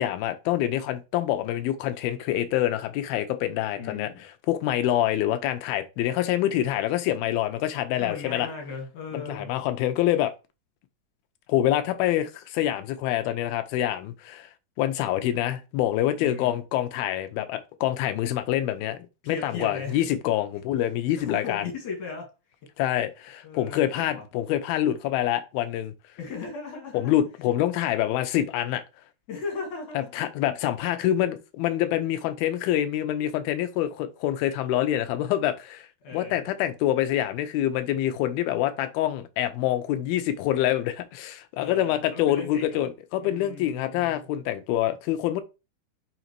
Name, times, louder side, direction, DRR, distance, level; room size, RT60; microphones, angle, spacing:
voice 1, 0.0-4.1 4.5-8.5 9.1-10.3 11.5-14.5 14.8-19.0 19.3-21.6 22.8-25.9 26.9-28.8 30.0-45.4, left 12 dB, 80° left, 2.3 m, -26 dB
voice 2, 3.8-4.2 8.0-9.5 16.2-16.6 19.2-20.0 21.2-22.3 23.4-24.2 26.2-27.2 29.3-30.2 36.0-36.4 41.6-42.8 43.2-44.3, left 4 dB, 55° left, 3.4 m, -37 dB
5.8 x 3.9 x 4.6 m
omnidirectional pair, 4.5 m